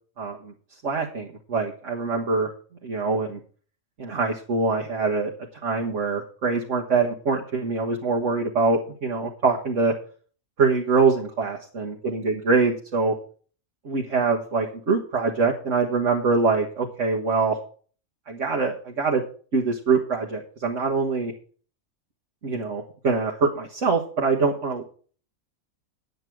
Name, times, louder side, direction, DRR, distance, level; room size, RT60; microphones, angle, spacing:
voice 1, 0.2-0.5 0.8-2.5 2.8-3.4 4.0-5.3 5.6-9.9 10.6-13.1 13.8-17.6 18.3-19.2 19.5-21.3 22.4-24.8, right 4 dB, 60° right, -1 dB, 1.9 m, -24 dB
9.8 x 9.4 x 4.7 m, 0.42 s
omnidirectional pair, 1.4 m